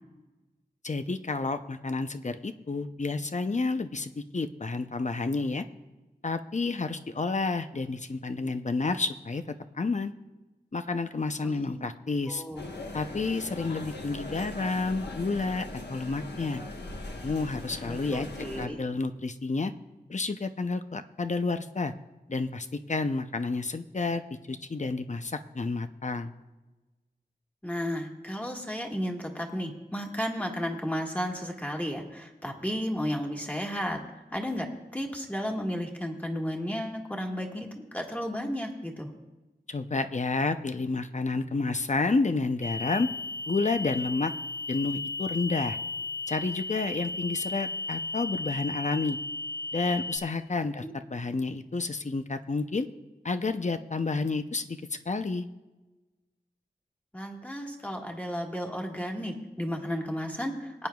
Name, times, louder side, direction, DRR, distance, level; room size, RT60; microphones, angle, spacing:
voice 1, 0.8-5.6 6.2-10.1 10.7-12.4 12.9-16.6 17.2-18.3 18.6-19.7 20.1-21.9 22.3-26.3 39.7-43.1 43.5-44.3 44.7-45.8 46.3-49.2 49.7-52.9 53.2-54.8 55.1-55.5, left 3 dB, 45° left, 9 dB, 0.7 m, -30 dB
voice 2, 11.4-11.9 12.3-12.7 17.9-18.8 27.6-34.0 34.3-39.1 50.8-50.9 57.1-60.9, equal, 10° left, 0 dB, 1.7 m, -33 dB
sound 1, 12.6-18.7, left 2 dB, 75° left, 1.3 m, -40 dB
sound 2, 42.6-50.2, left 2 dB, 80° right, 2.0 m, -35 dB
23.0 x 9.2 x 2.4 m, 1.1 s
wide cardioid pair, 50°, 18 cm